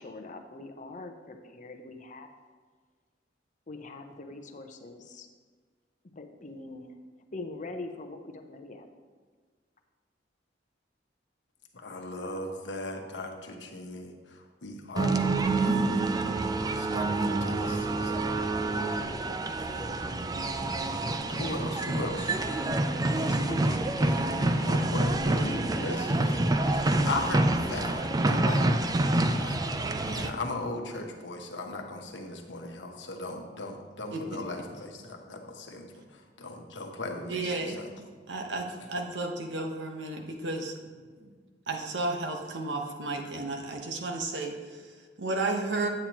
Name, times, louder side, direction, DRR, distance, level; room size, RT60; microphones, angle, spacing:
voice 1, 0.0-2.3 3.7-5.3 6.2-7.0 7.3-8.9, left 2 dB, 45° left, 4 dB, 0.8 m, -43 dB
voice 2, 11.7-16.1 16.7-18.3 19.6-20.0 20.9-22.7 23.1-29.1 29.4-29.6 30.0-37.4 37.8-37.9, left 2 dB, 80° left, 3 dB, 1.1 m, -38 dB
sound 1, 15.0-30.3, right 2 dB, 20° right, 0.4 m, -27 dB
voice 3, 34.1-34.4 37.3-37.8 38.3-41.4 41.7-45.9, right 2 dB, 80° right, 3 dB, 1.1 m, -33 dB
8.9 x 8.6 x 3.0 m, 1.5 s
head